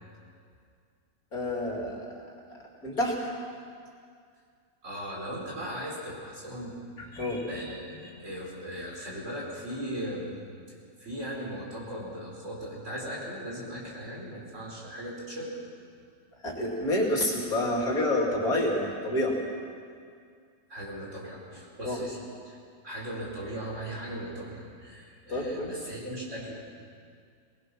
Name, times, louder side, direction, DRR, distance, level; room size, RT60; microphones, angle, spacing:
voice 1, 1.3-2.1 2.8-3.1 7.0-7.5 16.4-19.4 21.8-22.0 25.3-25.7, left 1 dB, 55° left, -1 dB, 3.3 m, -28 dB
voice 2, 4.8-10.4 11.0-15.6 20.7-22.6 22.8-26.6, equal, 40° right, -3 dB, 4.7 m, -38 dB
22.0 x 20.0 x 6.1 m, 2.2 s
omnidirectional pair, 1.9 m